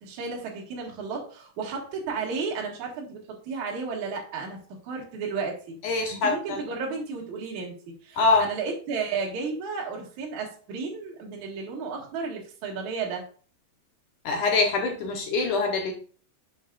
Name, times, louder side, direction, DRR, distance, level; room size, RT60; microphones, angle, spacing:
voice 1, 0.0-4.6 4.8-7.7 8.0-13.2, right 4 dB, 50° right, -2 dB, 2.9 m, -33 dB
voice 2, 5.8-6.6 8.2-8.5 14.3-15.9, left 3 dB, 70° left, 3 dB, 2.0 m, -24 dB
11.0 x 7.3 x 2.5 m, 0.41 s
omnidirectional pair, 5.0 m